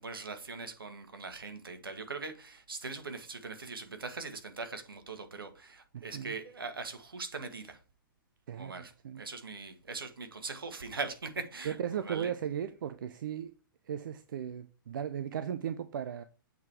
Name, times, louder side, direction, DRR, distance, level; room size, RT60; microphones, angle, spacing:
voice 1, 0.0-7.8 8.6-11.8 12.0-12.3, right 4 dB, 85° right, 1.7 m, -41 dB
voice 2, 5.9-6.3 8.5-9.2 11.6-13.5 13.9-16.2, right 9 dB, 65° right, 0.6 m, -36 dB
8.1 x 4.7 x 4.8 m
hypercardioid pair, 120°, 12 cm